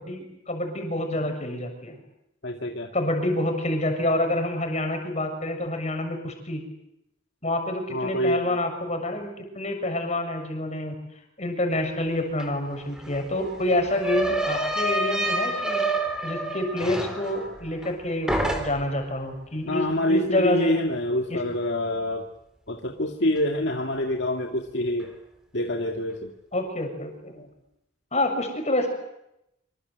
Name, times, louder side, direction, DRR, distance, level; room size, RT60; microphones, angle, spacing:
voice 1, 0.0-2.0 2.9-6.6 7.4-10.9 11.4-15.8 16.2-20.8 21.3-21.4 26.5-27.5 28.1-28.9, left 1 dB, 35° left, 4 dB, 6.7 m, -27 dB
voice 2, 2.4-2.9 7.9-8.6 19.7-22.3 22.7-25.1 25.5-26.3, left 1 dB, 60° left, 2 dB, 2.2 m, -26 dB
sound 1, 12.4-12.5 12.7-18.0 18.3-19.0, right 1 dB, 5° right, 3.9 m, -28 dB
26.5 x 25.5 x 8.1 m, 0.84 s
head